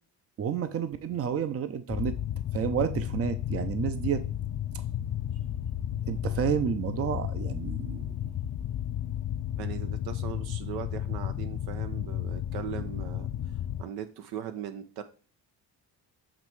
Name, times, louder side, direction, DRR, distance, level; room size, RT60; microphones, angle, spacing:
voice 1, 0.4-2.1 2.5-4.2 6.1-8.2, right 8 dB, 40° right, 0.7 m, -30 dB
sound 1, 1.9-13.8, left 11 dB, 45° left, 0.6 m, -33 dB
voice 2, 9.6-13.3 13.8-15.0, right 9 dB, 85° right, 0.9 m, -39 dB
7.4 x 3.1 x 4.7 m
cardioid pair, 95°, 37 cm